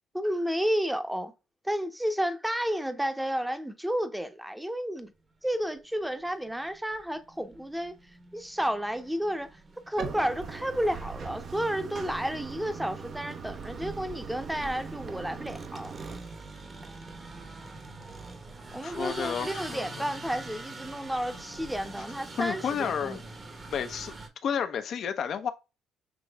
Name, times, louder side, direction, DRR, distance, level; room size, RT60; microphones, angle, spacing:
voice 1, 0.1-1.3 1.6-5.1 5.4-8.0 8.3-9.6 9.9-15.9 18.7-23.2, equal, 5° right, 0.8 m, -31 dB
sound 1, 5.5-5.6 6.0-24.3, right 3 dB, 35° right, 1.0 m, -45 dB
Bathtub (filling or washing), 10.0-16.2, right 5 dB, 55° right, 0.7 m, -40 dB
voice 2, 18.8-19.9 22.4-23.2 23.7-24.1 24.4-25.5, left 7 dB, 60° left, 0.7 m, -31 dB
6.1 x 3.1 x 2.3 m
supercardioid pair, 65°, 0 cm